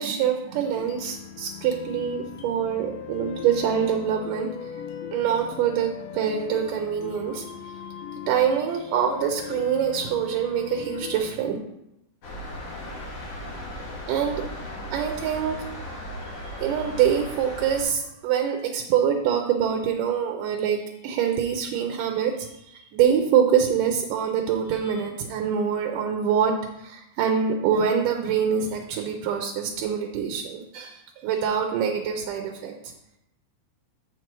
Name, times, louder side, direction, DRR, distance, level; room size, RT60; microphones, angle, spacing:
voice 1, 0.0-4.7 5.1-7.4 8.3-11.6 14.1-14.4 14.9-26.5 26.8-32.8, right 8 dB, 80° right, 3 dB, 2.3 m, -25 dB
sound 1, 0.6-11.2, left 9 dB, 90° left, 2.5 m, -39 dB
sound 2, 12.2-17.8, equal, 55° left, 2.2 m, -36 dB
7.9 x 6.0 x 4.5 m, 0.85 s
omnidirectional pair, 4.0 m